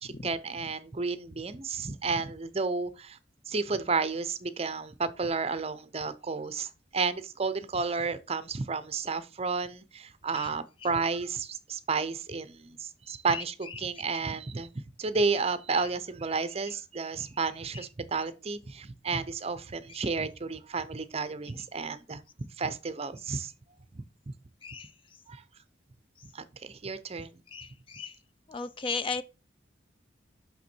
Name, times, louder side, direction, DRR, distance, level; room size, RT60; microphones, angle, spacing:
voice 1, 0.0-3.2 3.5-22.2 22.6-23.5 23.9-24.3 25.3-25.4 26.3-27.4, right 4 dB, 35° right, 0.6 m, -32 dB
voice 2, 27.5-28.1 28.5-29.2, left 4 dB, 25° left, 0.4 m, -35 dB
6.0 x 5.7 x 4.4 m
head